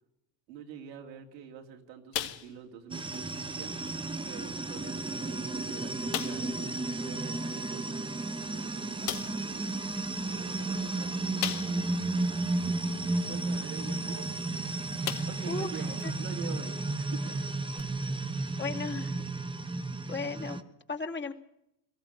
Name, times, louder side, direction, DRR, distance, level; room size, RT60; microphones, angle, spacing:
voice 1, 0.5-3.7 4.2-8.0 8.5-9.7 10.2-11.8 12.4-14.3 15.3-17.4, right 8 dB, 85° right, 3 dB, 2.8 m, -46 dB
sound 1, 2.1-2.8 3.1-3.3 3.9-4.0 4.8-4.9 5.3-5.4 6.1-6.5 8.2-8.3 9.1-9.5 11.4-12.0 12.5-12.6 14.4-14.6 15.0-15.5 16.0-16.1 17.8-17.9, left 12 dB, 80° left, 1.8 m, -36 dB
sound 2, 2.9-20.6, right 2 dB, 10° right, 1.1 m, -33 dB
voice 2, 9.0-9.4 15.5-16.1 18.6-19.1 20.1-21.3, left 3 dB, 20° left, 2 dB, 2.4 m, -36 dB
22.0 x 15.0 x 8.5 m, 0.83 s
hypercardioid pair, 80°, 49 cm